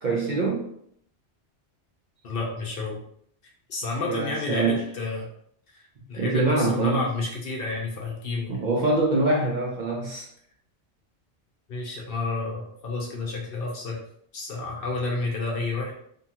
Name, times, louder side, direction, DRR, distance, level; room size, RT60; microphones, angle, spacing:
voice 1, 0.0-0.7 4.1-4.8 6.2-7.0 8.5-10.3, right 2 dB, 55° right, -2 dB, 0.5 m, -24 dB
voice 2, 2.2-3.0 3.7-5.3 5.7-5.8 6.1-8.6 11.7-14.0 14.3-15.9, left 3 dB, 60° left, 0 dB, 0.8 m, -30 dB
2.7 x 2.3 x 2.8 m, 0.68 s
omnidirectional pair, 1.2 m